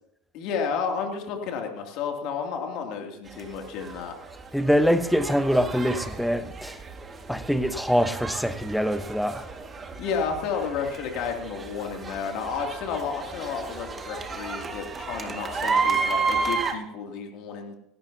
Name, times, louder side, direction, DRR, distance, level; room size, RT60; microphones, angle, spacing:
voice 1, 0.3-4.1 10.0-17.7, left 6 dB, 55° left, 2.8 m, -31 dB
sound 1, 3.3-16.7, right 4 dB, 25° right, 2.0 m, -32 dB
voice 2, 4.5-6.8 7.3-9.5, equal, ahead, 1.1 m, -24 dB
17.5 x 17.5 x 2.9 m
hypercardioid pair, 80°, 0 cm